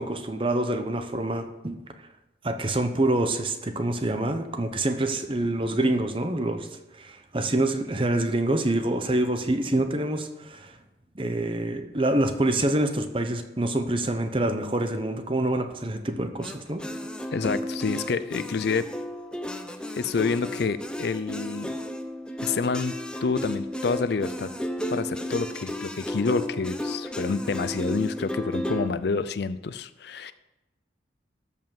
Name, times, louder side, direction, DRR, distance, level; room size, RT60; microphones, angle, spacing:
voice 1, 0.0-1.8 2.4-6.7 7.0-10.8 11.1-16.8, right 1 dB, 25° right, 8 dB, 0.8 m, -26 dB
sound 1, 16.4-28.9, left 1 dB, 5° left, 0.7 m, -33 dB
voice 2, 17.3-18.9 19.9-21.7 22.4-22.9 23.2-24.5 24.9-30.3, left 4 dB, 55° left, 13 dB, 0.4 m, -28 dB
13.0 x 5.5 x 7.2 m, 1.0 s
head